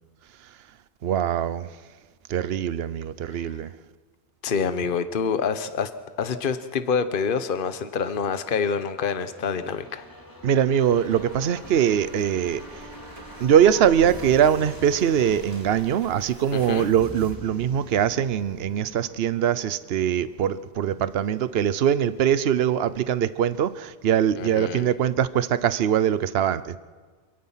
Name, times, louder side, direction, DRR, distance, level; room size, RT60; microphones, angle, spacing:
voice 1, 1.0-1.7 2.3-3.7 10.4-12.9 13.4-26.8, right 9 dB, 65° right, 15 dB, 1.0 m, -22 dB
voice 2, 4.4-5.9 6.2-10.0 16.5-16.9 24.4-24.9, left 6 dB, 50° left, 10 dB, 1.1 m, -26 dB
sound 1, 9.1-22.5 22.8-22.9, equal, 15° left, 2.6 m, -44 dB
sound 2, 10.8-16.9, right 1 dB, 30° right, 3.0 m, -47 dB
27.0 x 17.5 x 5.7 m, 1.5 s
omnidirectional pair, 1.2 m